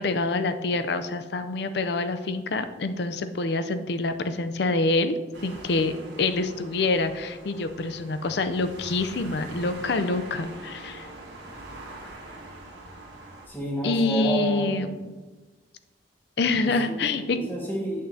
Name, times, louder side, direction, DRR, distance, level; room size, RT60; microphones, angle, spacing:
voice 1, 0.0-5.2 5.4-5.9 6.2-11.1 13.8-15.1 16.4-17.4, left 3 dB, 55° left, 10 dB, 0.5 m, -26 dB
sound 1, 5.3-13.5, right 2 dB, 60° right, 1.4 m, -43 dB
voice 2, 13.5-14.7 16.6-17.0 17.3-18.1, right 1 dB, 10° left, -4 dB, 1.6 m, -30 dB
8.8 x 6.4 x 2.7 m, 1.2 s
head